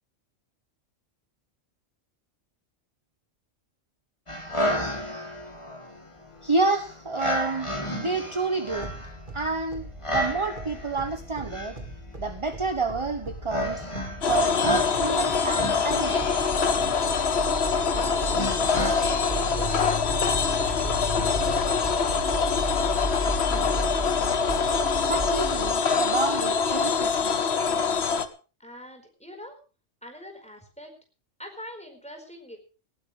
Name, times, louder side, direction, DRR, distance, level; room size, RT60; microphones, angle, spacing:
sound 1, 4.3-21.9, left 1 dB, 25° left, 3.1 m, -34 dB
voice 1, 6.4-8.9 9.3-11.8 12.2-13.9 14.2-16.4 25.0-27.4, right 3 dB, 25° right, 8 dB, 1.2 m, -29 dB
sound 2, 8.8-25.7, right 3 dB, 40° right, 2.5 m, -37 dB
sound 3, 14.2-28.3, left 5 dB, 55° left, 1.4 m, -24 dB
voice 2, 17.8-18.9 19.4-21.4 21.7-23.5 28.6-29.6 30.0-30.9 31.4-32.6, left 1 dB, 5° left, 4 dB, 4.7 m, -43 dB
19.0 x 16.5 x 3.3 m, 0.36 s
omnidirectional pair, 1.3 m